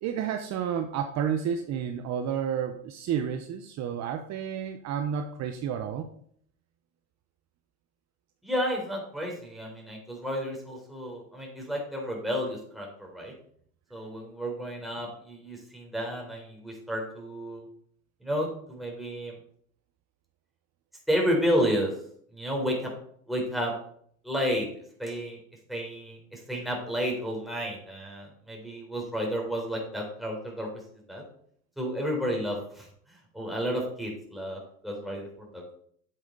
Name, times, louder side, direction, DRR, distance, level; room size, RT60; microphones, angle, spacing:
voice 1, 0.0-6.1, right 8 dB, 45° right, 6 dB, 1.0 m, -31 dB
voice 2, 8.4-13.3 13.9-17.7 18.2-19.4 21.1-21.9 22.3-22.9 23.3-23.7 24.2-24.7 25.0-25.4 25.7-30.7 31.1-31.2 31.8-32.9 33.3-35.7, equal, ahead, -1 dB, 4.1 m, -31 dB
8.8 x 8.7 x 4.0 m, 0.62 s
supercardioid pair, 115°, 37 cm